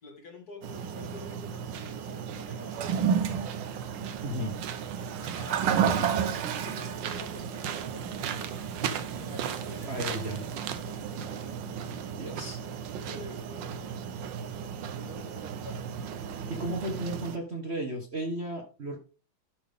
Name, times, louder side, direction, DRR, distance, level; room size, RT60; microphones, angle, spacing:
voice 1, 0.0-3.4 5.2-5.6 6.0-6.1 6.6-10.0 10.9-11.6 13.1-14.0 14.9-15.8, left 2 dB, 45° left, 2 dB, 2.6 m, -48 dB
sound 1, 0.6-17.4, right 7 dB, 65° right, 1.5 m, -37 dB
Toilet flush, 2.7-12.0, right 7 dB, 80° right, 1.9 m, -32 dB
voice 2, 4.2-4.6 5.6-6.1 9.9-10.5 12.1-12.6 16.5-19.0, right 1 dB, 35° right, 2 dB, 1.4 m, -34 dB
11.5 x 6.2 x 3.6 m, 0.34 s
omnidirectional pair, 2.3 m